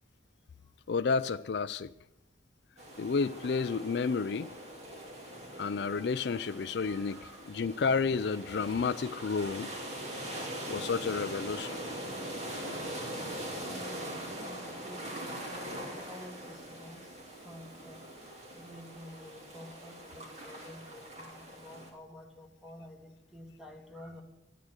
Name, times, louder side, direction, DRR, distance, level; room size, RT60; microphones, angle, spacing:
voice 1, 0.9-1.9 3.0-4.5 5.6-7.2 7.5-9.7 10.7-11.8, left 5 dB, 60° left, 0.4 m, -31 dB
sound 1, 2.8-21.9, right 1 dB, 35° right, 2.7 m, -42 dB
voice 2, 6.4-7.5 9.1-10.4 13.6-17.1 17.3-18.2 18.5-24.2, equal, ahead, 1.9 m, -51 dB
13.0 x 10.0 x 6.5 m
head